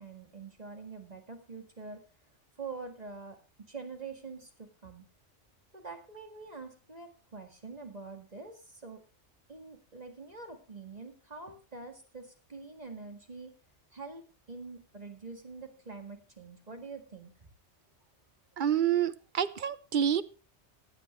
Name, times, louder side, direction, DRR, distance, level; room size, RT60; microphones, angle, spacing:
voice 1, 0.0-2.0 2.6-5.0 5.7-9.0 9.5-13.6 13.9-17.3, right 4 dB, 35° right, 4 dB, 1.9 m, -45 dB
voice 2, 18.6-20.2, right 9 dB, 50° right, 15 dB, 0.7 m, -28 dB
16.0 x 9.2 x 3.1 m, 0.34 s
omnidirectional pair, 1.2 m